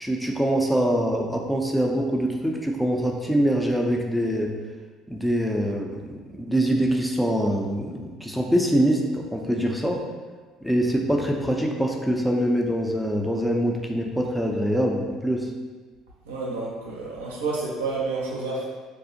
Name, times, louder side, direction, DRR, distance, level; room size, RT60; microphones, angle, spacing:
voice 1, 0.0-4.5 5.1-10.0 10.6-15.5, equal, ahead, 0 dB, 0.4 m, -24 dB
voice 2, 16.3-18.7, right 3 dB, 85° right, -4 dB, 0.5 m, -29 dB
2.5 x 2.0 x 2.6 m, 1.4 s
hypercardioid pair, 60°, 0 cm